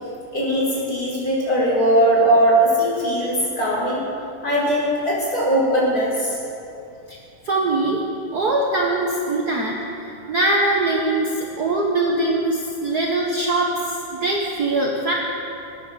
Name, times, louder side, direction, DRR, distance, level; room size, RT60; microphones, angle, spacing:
voice 1, 0.3-4.0 4.4-6.4, right 1 dB, 25° left, -7 dB, 5.1 m, -19 dB
voice 2, 7.4-8.0 8.3-15.1, right 2 dB, 70° right, -2 dB, 0.9 m, -22 dB
21.0 x 9.3 x 7.0 m, 2.7 s
omnidirectional pair, 3.8 m